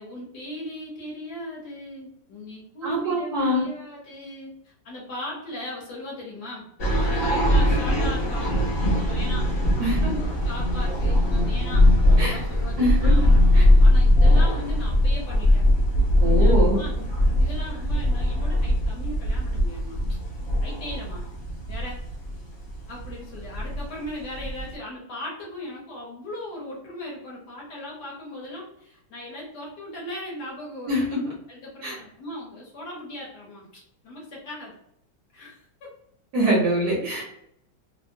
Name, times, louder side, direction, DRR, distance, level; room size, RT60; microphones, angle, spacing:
voice 1, 0.0-6.6 7.0-9.5 10.0-13.2 13.8-15.6 16.3-17.1 17.3-20.2 20.6-21.2 21.7-22.0 22.9-31.0 31.5-34.7 35.3-35.9, left 1 dB, 60° left, -4 dB, 1.4 m, -38 dB
voice 2, 2.8-3.6 9.8-10.1 12.2-12.4 12.8-13.3 13.5-13.7 16.2-16.8 30.9-31.2 31.8-32.0 36.3-37.2, right 1 dB, 65° right, -3 dB, 1.0 m, -24 dB
sound 1, 6.8-24.7, left 1 dB, 85° left, 0.5 m, -21 dB
3.4 x 2.1 x 2.6 m, 0.74 s
omnidirectional pair, 2.2 m